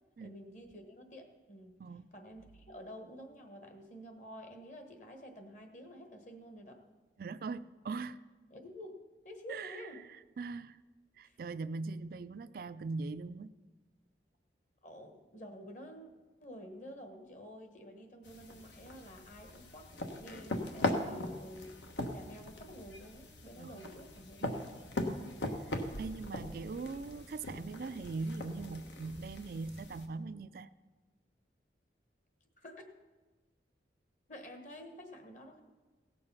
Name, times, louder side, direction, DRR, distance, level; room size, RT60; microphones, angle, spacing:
voice 1, 0.2-1.8 2.1-6.8 8.5-10.0 11.2-11.4 14.8-16.1 16.4-21.8 22.1-24.7 25.2-25.4 32.6-32.9 34.3-35.6, equal, 45° left, 5 dB, 1.3 m, -50 dB
voice 2, 7.2-8.2 9.5-10.8 11.2-13.5 23.6-23.9 24.4-24.6 25.0-25.2 26.0-30.7, right 3 dB, 55° right, 12 dB, 0.3 m, -41 dB
sound 1, 18.2-30.1, left 1 dB, 85° left, 1.2 m, -40 dB
17.0 x 6.8 x 5.5 m, 1.3 s
head